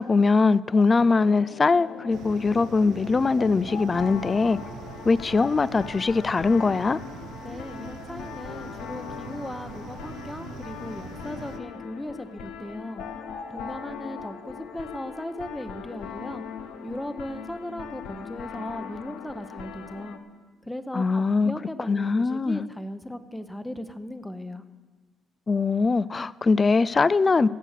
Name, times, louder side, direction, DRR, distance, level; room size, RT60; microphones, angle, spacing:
voice 1, 0.0-4.6 5.1-7.0 20.9-21.5 21.9-22.7 25.5-27.5, left 4 dB, 30° left, 19 dB, 0.4 m, -22 dB
sound 1, 1.0-20.2, left 7 dB, 90° left, 0.9 m, -40 dB
sound 2, 2.1-11.6, right 8 dB, 80° right, 0.7 m, -43 dB
voice 2, 7.4-13.0 13.5-16.4 16.8-20.2 20.7-24.6, left 1 dB, 5° left, 10 dB, 0.8 m, -37 dB
16.5 x 7.6 x 6.6 m, 1.4 s
cardioid pair, 90°, 0 cm